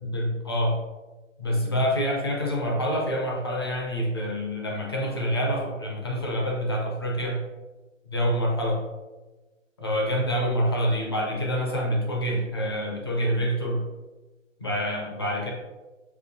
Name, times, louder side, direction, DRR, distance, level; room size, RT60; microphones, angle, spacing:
voice 1, 0.0-0.8 1.4-7.4 8.1-8.8 9.8-13.8 14.6-15.5, equal, 20° left, -1 dB, 0.4 m, -26 dB
6.8 x 2.4 x 2.6 m, 1.2 s
hypercardioid pair, 150°, 39 cm